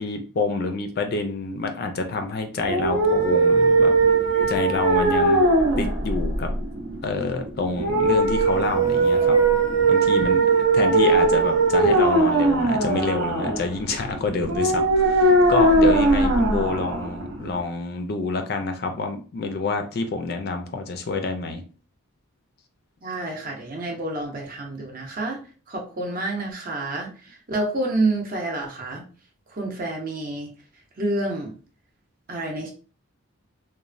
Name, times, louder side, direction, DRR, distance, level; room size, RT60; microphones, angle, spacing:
voice 1, 0.0-3.9 4.5-5.4 5.8-6.5 7.0-9.4 9.9-21.6, left 3 dB, 45° left, 6 dB, 0.3 m, -27 dB
sound 1, 2.6-17.6, right 3 dB, 75° right, 0.7 m, -20 dB
voice 2, 23.0-25.4 25.7-29.0 29.5-30.5 31.0-31.5 32.3-32.7, right 2 dB, 40° right, 1 dB, 0.6 m, -28 dB
3.0 x 2.1 x 2.5 m, 0.38 s
head